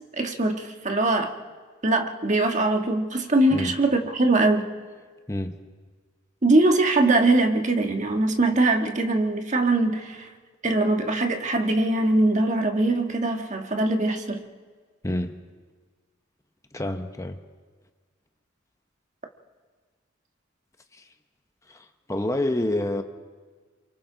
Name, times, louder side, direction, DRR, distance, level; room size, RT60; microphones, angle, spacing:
voice 1, 0.2-1.3 1.8-4.6 6.4-10.3 10.6-14.4, right 2 dB, 35° right, 4 dB, 1.5 m, -22 dB
voice 2, 5.3-5.6 15.0-15.4 16.7-17.4 20.9-21.0 21.7-23.0, left 1 dB, 15° left, 7 dB, 0.9 m, -28 dB
28.5 x 24.0 x 4.0 m, 1.5 s
head